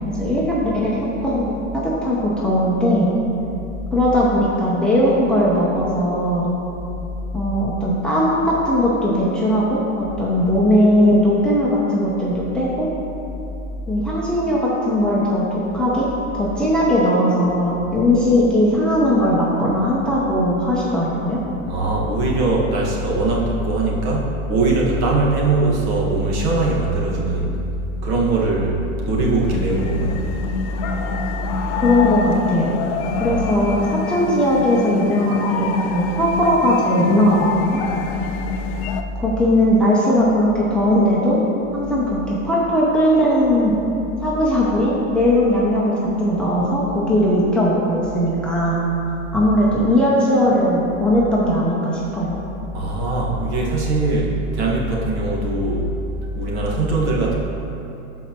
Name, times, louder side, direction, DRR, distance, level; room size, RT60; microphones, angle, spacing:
voice 1, 0.1-3.1 3.9-6.5 7.3-12.9 13.9-16.1 16.3-21.4 31.8-32.7 33.2-37.8 39.1-41.4 41.7-43.8 44.2-48.8 49.3-52.4, equal, ahead, -6 dB, 0.8 m, -18 dB
voice 2, 21.7-27.6 28.0-30.2 33.2-33.4 52.7-55.9 56.3-57.3, right 2 dB, 50° right, -3 dB, 1.7 m, -21 dB
sound 1, 29.3-39.0, left 5 dB, 40° left, 0.4 m, -26 dB
12.5 x 4.6 x 2.9 m, 2.8 s
hypercardioid pair, 125°, 41 cm